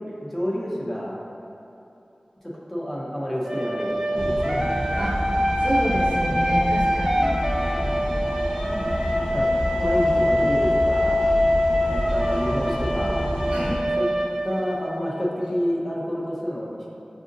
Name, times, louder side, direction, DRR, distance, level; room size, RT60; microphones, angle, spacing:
voice 1, 0.2-1.1 2.7-4.6 9.2-9.5 9.8-11.2 11.8-13.2 14.0-14.1 14.4-16.8, equal, 10° left, -6 dB, 0.8 m, -28 dB
sound 1, 3.4-15.3, equal, 20° right, 0.4 m, -24 dB
sound 2, 4.1-13.8, equal, 80° left, 0.9 m, -29 dB
voice 2, 5.6-7.3 8.6-9.0 9.3-9.5 9.8-10.0 13.5-13.8, equal, 75° right, -7 dB, 0.9 m, -29 dB
6.0 x 2.5 x 2.6 m, 2.9 s
wide cardioid pair, 50°, 2 cm